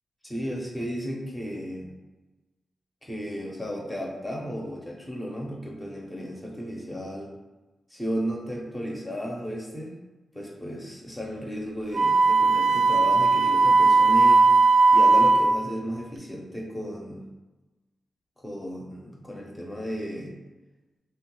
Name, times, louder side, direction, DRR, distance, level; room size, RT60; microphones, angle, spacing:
voice 1, 0.2-1.9 3.0-7.3 7.9-9.9 10.3-14.4 14.9-17.3 18.4-20.3, equal, 10° left, -2 dB, 0.5 m, -34 dB
Wind instrument woodwind instrument, 11.9-15.5, right 3 dB, 70° right, 0.3 m, -18 dB
3.1 x 2.2 x 3.0 m, 1.1 s
wide cardioid pair, 115°, 0 cm